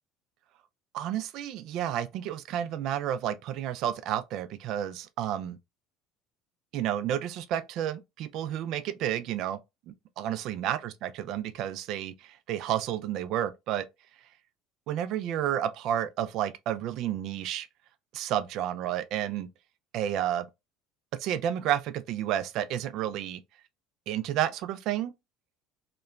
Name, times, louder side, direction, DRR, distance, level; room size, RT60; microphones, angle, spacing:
voice 1, 0.9-5.6 6.7-9.6 10.2-12.1 12.5-13.9 14.9-17.7 18.1-19.5 19.9-20.5 21.2-23.4 24.1-25.1, right 11 dB, 65° right, 0.3 m, -31 dB
2.9 x 2.1 x 2.4 m
supercardioid pair, 90°, 0 cm